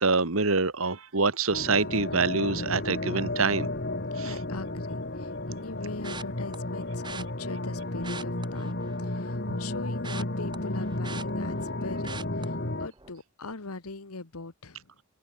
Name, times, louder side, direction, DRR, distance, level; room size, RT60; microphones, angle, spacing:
voice 1, 0.0-3.7 4.2-4.3 9.5-9.6, right 4 dB, 70° right, 1.9 m, -26 dB
sound 1, 1.5-12.9, left 1 dB, 45° left, 2.2 m, -33 dB
voice 2, 4.2-11.6 11.8-14.8, left 3 dB, 85° left, 1.5 m, -41 dB
sound 2, 6.0-6.6 7.0-7.2 7.9-9.2 9.5-11.7 12.0-12.4 12.9-13.2 13.5-13.6, right 4 dB, 20° right, 1.7 m, -41 dB
head